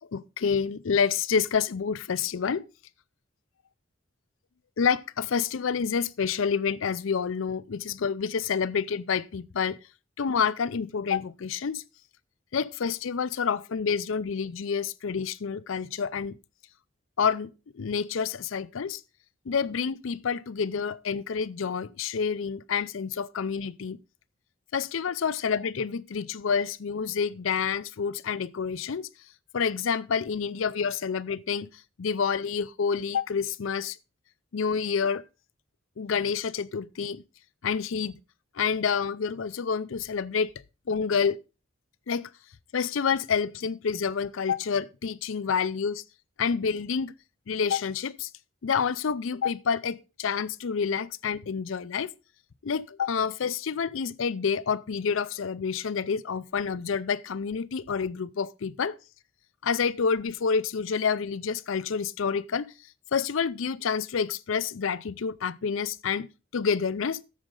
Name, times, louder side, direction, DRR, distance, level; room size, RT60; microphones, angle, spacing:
voice 1, 0.1-2.6 4.8-9.8 10.2-11.8 12.5-16.3 17.2-17.5 17.8-19.0 19.5-24.0 24.7-29.1 29.5-31.7 32.0-34.0 34.5-35.2 36.0-37.2 37.6-38.2 38.6-40.5 40.9-41.4 42.1-42.3 42.7-46.0 46.4-47.1 47.5-48.3 48.6-52.1 52.6-59.0 59.6-62.7 63.1-66.3 66.5-67.2, left 6 dB, 75° left, 0.5 m, -28 dB
11.0 x 7.5 x 3.8 m
head